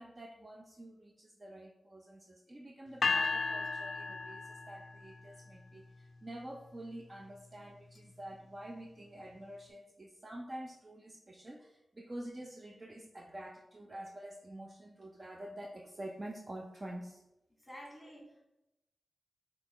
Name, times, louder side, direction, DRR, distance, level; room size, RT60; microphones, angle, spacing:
voice 1, 0.0-17.2, right 1 dB, 30° right, 2 dB, 0.4 m, -47 dB
sound 1, 3.0-5.1, left 4 dB, 70° left, 0.3 m, -34 dB
voice 2, 17.6-18.4, equal, 10° left, -2 dB, 1.5 m, -50 dB
5.8 x 2.3 x 3.7 m, 0.92 s
wide cardioid pair, 80°, 0 cm